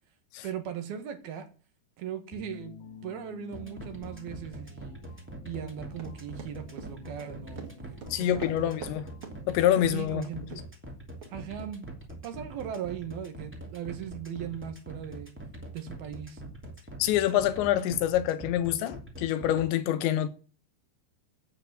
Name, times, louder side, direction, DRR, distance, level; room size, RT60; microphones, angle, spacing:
voice 1, 0.4-1.5 2.0-2.8 3.0-5.0 5.4-8.7 9.9-10.5 11.3-15.3 15.7-16.4, right 9 dB, 65° right, 3.3 m, -39 dB
sound 1, 2.3-10.4, left 2 dB, 65° left, 3.0 m, -49 dB
sound 2, 3.5-19.6, right 1 dB, 5° right, 1.2 m, -43 dB
Run, 6.0-9.0 9.2-9.4 9.8-10.0 10.5-10.6 11.2-11.3, right 5 dB, 35° right, 2.9 m, -43 dB
voice 2, 8.1-9.1 9.5-10.6 17.0-20.3, left 12 dB, 90° left, 3.4 m, -26 dB
11.5 x 8.7 x 7.7 m
omnidirectional pair, 5.0 m